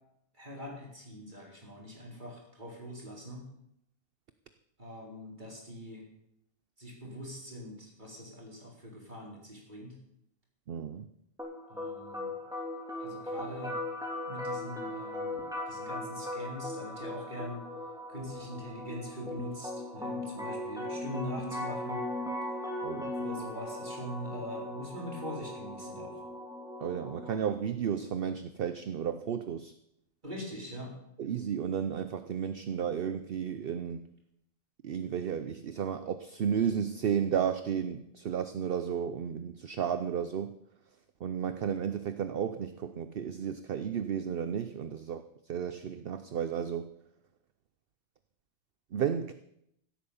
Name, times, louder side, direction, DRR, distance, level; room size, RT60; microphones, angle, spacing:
voice 1, 0.3-3.4 4.8-6.0 6.8-9.9 11.7-12.3 13.0-13.8 14.2-17.7 18.1-22.0 23.2-26.2 30.2-30.9, equal, 40° right, -2 dB, 4.2 m, -42 dB
voice 2, 10.7-11.1 22.8-23.1 26.8-29.7 31.2-34.1 34.8-40.5 41.2-45.2 45.5-46.9 48.9-49.3, right 8 dB, 55° right, 11 dB, 0.8 m, -33 dB
sound 1, 11.4-27.4, left 1 dB, 5° right, 3.0 m, -38 dB
16.0 x 8.8 x 7.1 m, 0.77 s
omnidirectional pair, 1.2 m